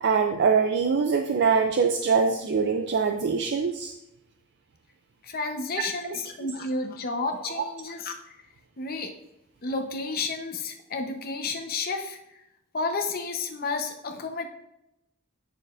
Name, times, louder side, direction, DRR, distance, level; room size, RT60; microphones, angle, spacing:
voice 1, 0.0-3.9, right 5 dB, 55° right, 6 dB, 0.4 m, -23 dB
voice 2, 5.2-8.1 8.8-9.1 9.6-12.2 12.7-14.5, left 3 dB, 45° left, 4 dB, 0.8 m, -31 dB
9.0 x 6.4 x 2.5 m, 0.85 s
head